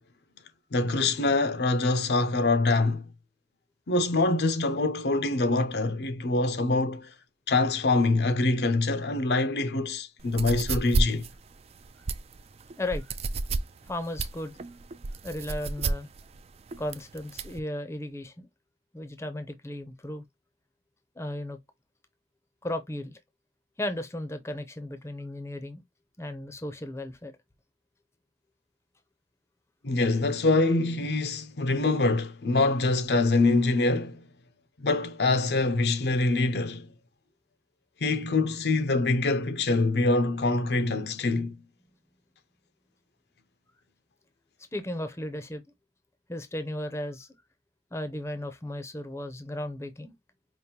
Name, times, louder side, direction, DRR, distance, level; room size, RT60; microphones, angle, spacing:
voice 1, 0.7-3.0 3.9-7.1 7.5-11.2 29.8-34.2 34.8-36.9 38.0-41.6, left 2 dB, 70° left, 0.6 m, -25 dB
sound 1, 10.2-17.6, right 3 dB, 35° right, 0.4 m, -31 dB
voice 2, 12.8-13.1 13.9-14.5 15.2-16.1 16.8-18.5 18.9-20.2 21.2-21.6 22.6-23.2 23.8-25.8 26.2-27.3 44.7-45.6 46.3-47.3 47.9-50.1, left 1 dB, 15° left, 0.6 m, -35 dB
5.2 x 2.5 x 2.8 m
head